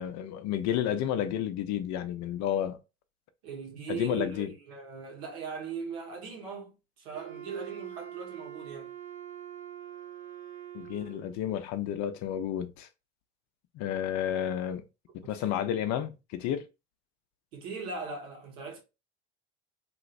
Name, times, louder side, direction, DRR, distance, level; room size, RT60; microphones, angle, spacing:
voice 1, 0.0-2.8 3.9-4.5 10.7-12.9 13.7-14.9 15.1-16.6, left 10 dB, 60° left, 0.6 m, -31 dB
voice 2, 3.4-8.9 15.2-15.4 17.5-18.8, right 5 dB, 70° right, 1.5 m, -39 dB
Wind instrument woodwind instrument, 7.1-11.4, right 11 dB, 25° right, 1.2 m, -44 dB
3.0 x 3.0 x 2.5 m
hypercardioid pair, 75°, 33 cm